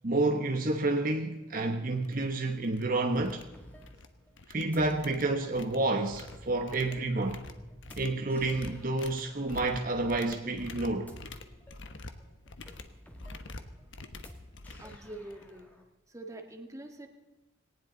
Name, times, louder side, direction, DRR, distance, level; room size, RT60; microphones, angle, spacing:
voice 1, 0.0-3.4 4.5-7.4 8.0-11.1, right 2 dB, 45° right, 4 dB, 1.2 m, -29 dB
sound 1, 1.5-1.6 2.0-2.2 2.5-2.8 3.2-4.1 4.4-15.6, left 2 dB, 70° left, 1.2 m, -47 dB
sound 2, 3.1-15.8, equal, 10° left, 2.1 m, -53 dB
voice 2, 14.8-15.7 16.1-17.1, right 1 dB, 15° right, 4 dB, 1.7 m, -45 dB
19.0 x 18.5 x 4.0 m, 1.1 s
head